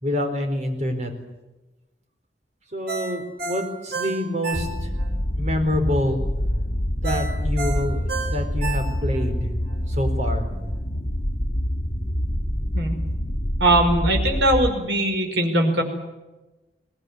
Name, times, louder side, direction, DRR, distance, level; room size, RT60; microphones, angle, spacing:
voice 1, 0.0-1.1 2.7-4.9 5.3-6.2 7.0-9.5 9.9-10.5, left 1 dB, 40° right, 5 dB, 4.3 m, -26 dB
Ringtone, 2.9-5.1 5.5-5.6 7.0-9.3 9.7-9.8, right 4 dB, 60° right, 4.4 m, -31 dB
sound 1, 4.5-14.7, equal, 65° left, 2.6 m, -26 dB
voice 2, 13.6-15.8, right 1 dB, 85° right, 3 dB, 5.1 m, -20 dB
22.0 x 20.0 x 9.7 m, 1.1 s
head